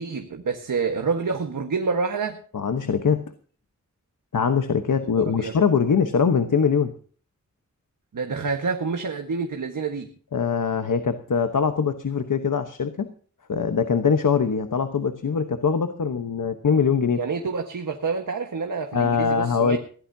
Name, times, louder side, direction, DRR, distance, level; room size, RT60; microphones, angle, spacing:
voice 1, 0.0-2.4 5.2-5.5 8.1-10.1 17.1-19.8, right 4 dB, 85° right, 4 dB, 1.5 m, -27 dB
voice 2, 2.5-3.2 4.3-6.9 10.3-13.1 13.5-17.2 18.9-19.8, left 6 dB, 80° left, 8 dB, 1.2 m, -22 dB
21.0 x 15.5 x 2.8 m, 0.43 s
wide cardioid pair, 75°, 31 cm